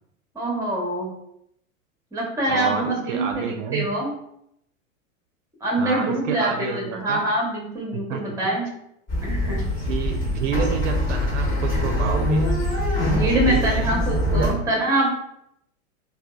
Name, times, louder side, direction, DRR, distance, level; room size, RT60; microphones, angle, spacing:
voice 1, 0.3-1.1 2.1-4.1 5.6-8.7 9.2-9.6 12.9-15.2, right 1 dB, 10° right, -2 dB, 0.7 m, -25 dB
voice 2, 2.5-3.9 5.8-7.2 7.9-8.5 9.9-12.5 13.4-14.0 14.4-14.5, right 6 dB, 65° right, 3 dB, 0.5 m, -29 dB
sound 1, 9.1-14.5, left 1 dB, 30° left, 1.0 m, -23 dB
2.7 x 2.1 x 2.2 m, 0.75 s
hypercardioid pair, 100°, 41 cm